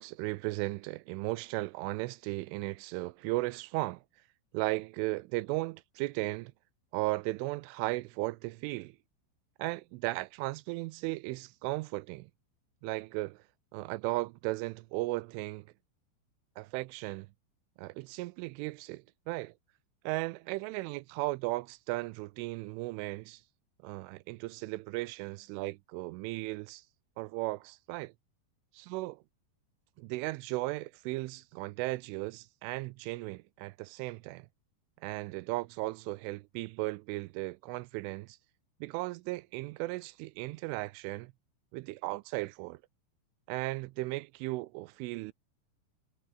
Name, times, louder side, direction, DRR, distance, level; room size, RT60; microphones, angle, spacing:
voice 1, 0.0-4.0 4.5-6.5 6.9-9.0 9.6-12.3 12.8-13.4 13.7-15.7 16.6-17.3 17.8-19.5 20.0-23.4 23.8-26.8 27.2-28.1 28.7-29.2 30.0-34.5 35.0-38.4 38.8-41.3 41.7-42.8 43.5-45.3, right 21 dB, 85° right, 3.0 m, -36 dB
omnidirectional pair, 5.7 m